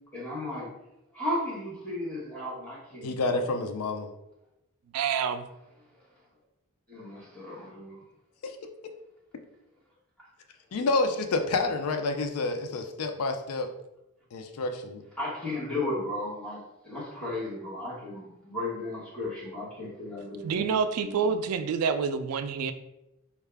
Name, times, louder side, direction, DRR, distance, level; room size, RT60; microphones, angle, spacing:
voice 1, 0.1-0.7 1.1-3.4 6.9-8.0 15.2-20.7 21.0-21.3, left 1 dB, 5° left, -6 dB, 1.3 m, -35 dB
voice 2, 3.0-4.1 8.4-8.6 10.7-13.7 14.3-15.0, left 3 dB, 75° left, 6 dB, 0.4 m, -29 dB
voice 3, 4.9-5.4 20.4-22.7, right 6 dB, 75° right, 10 dB, 0.3 m, -27 dB
4.5 x 2.3 x 3.4 m, 0.91 s
head